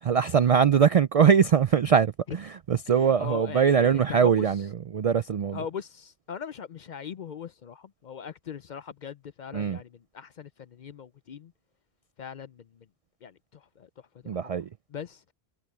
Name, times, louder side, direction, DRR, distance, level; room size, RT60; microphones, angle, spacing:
voice 1, 0.0-5.6 9.5-9.8 14.3-14.7, right 7 dB, 65° right, 0.3 m, -22 dB
voice 2, 3.0-4.5 5.5-11.5 12.2-12.9 13.2-13.9 14.2-14.4 14.9-15.2, left 7 dB, 55° left, 0.6 m, -40 dB
omnidirectional pair, 1.1 m